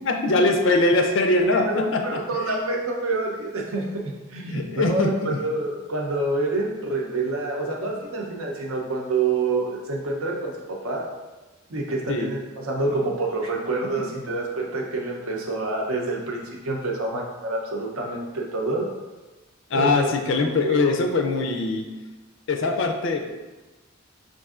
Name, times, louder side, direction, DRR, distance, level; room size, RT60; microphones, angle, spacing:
voice 1, 0.0-2.6 4.5-5.4 12.1-12.3 19.7-21.9 22.5-23.3, left 3 dB, 55° left, 4 dB, 0.4 m, -22 dB
voice 2, 1.5-4.0 4.3-10.5 10.8-11.1 11.7-18.9 19.7-20.1 20.6-20.8, right 2 dB, 75° right, -1 dB, 0.7 m, -27 dB
5.3 x 2.6 x 2.4 m, 1.2 s
head